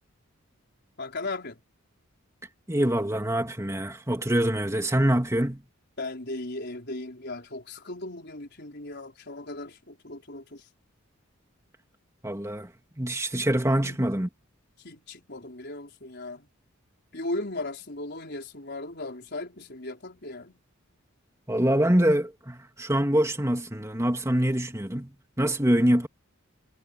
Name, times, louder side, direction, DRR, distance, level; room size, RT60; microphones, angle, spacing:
voice 1, 1.0-1.6 6.0-10.7 13.8-14.0 14.8-16.5 17.1-20.6, left 2 dB, 50° left, 5.1 m, -37 dB
voice 2, 2.7-5.6 12.2-14.3 21.5-26.1, right 1 dB, 15° right, 2.6 m, -25 dB
head